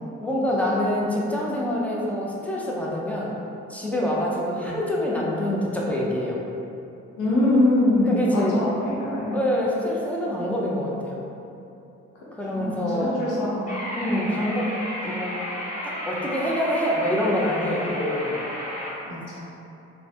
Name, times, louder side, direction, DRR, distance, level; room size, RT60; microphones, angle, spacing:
voice 1, 0.2-3.4 3.7-6.4 8.1-8.6 9.3-11.2 12.3-13.2 13.9-14.7 15.0-15.4 15.8-18.4, left 1 dB, 5° left, -5 dB, 0.4 m, -26 dB
voice 2, 7.2-9.4 12.5-13.7 14.0-14.2 19.1-19.4, left 1 dB, 90° left, -7 dB, 0.8 m, -23 dB
sound 1, 13.7-18.9, equal, 25° left, 0.9 m, -32 dB
3.2 x 2.1 x 2.7 m, 2.8 s
cardioid pair, 90°, 30 cm